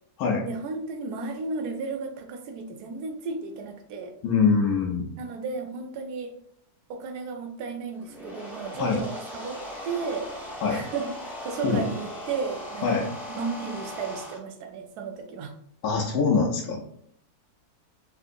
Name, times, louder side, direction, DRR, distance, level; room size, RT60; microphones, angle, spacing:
voice 1, 0.4-4.2 5.2-6.4 6.9-10.4 10.7-13.0 13.3-15.5, right 4 dB, 90° right, 5 dB, 1.1 m, -34 dB
voice 2, 4.2-5.1 8.8-9.0 10.6-10.8 11.6-11.8 12.8-13.0 15.8-17.0, left 5 dB, 75° left, -1 dB, 1.0 m, -24 dB
sound 1, 7.9-14.4, equal, ahead, 0.5 m, -39 dB
3.5 x 2.7 x 2.5 m, 0.65 s
omnidirectional pair, 1.6 m